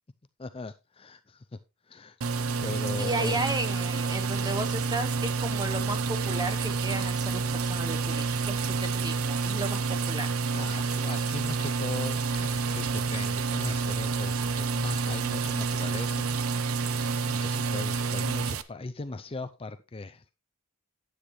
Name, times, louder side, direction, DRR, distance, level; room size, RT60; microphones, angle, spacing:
voice 1, 0.4-1.6 1.9-2.2 2.6-3.4 10.5-16.3 16.8-20.3, left 3 dB, 25° left, 11 dB, 0.5 m, -39 dB
sound 1, 2.2-18.6, right 4 dB, 85° right, 0.7 m, -29 dB
voice 2, 3.0-9.8 10.1-10.3, right 2 dB, 20° right, 8 dB, 1.1 m, -34 dB
9.8 x 8.6 x 3.1 m, 0.26 s
head